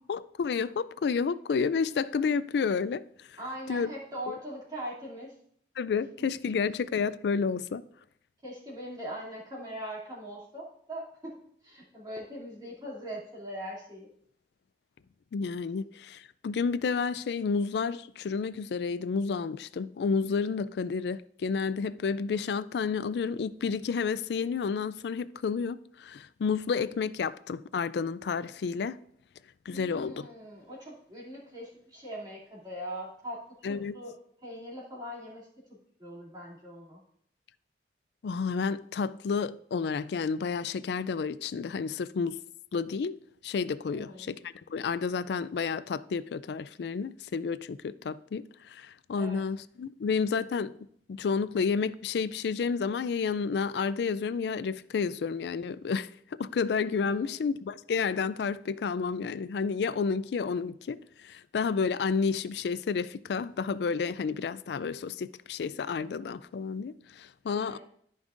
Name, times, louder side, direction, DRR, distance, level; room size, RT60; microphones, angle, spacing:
voice 1, 0.1-3.0 3.7-3.9 4.3-4.4 5.8-7.8 15.3-29.0 29.7-30.3 33.6-33.9 38.2-42.4 42.7-43.2 43.4-48.4 48.7-50.7 51.1-56.1 56.4-61.0 61.2-67.8, left 5 dB, 70° left, 0.3 m, -30 dB
voice 2, 3.4-5.3 8.4-14.1 29.7-34.1 34.4-35.5 36.0-37.0 43.9-44.3 49.1-49.4 57.0-57.4 67.5-67.8, equal, 25° right, 2.6 m, -41 dB
14.0 x 5.3 x 2.5 m
head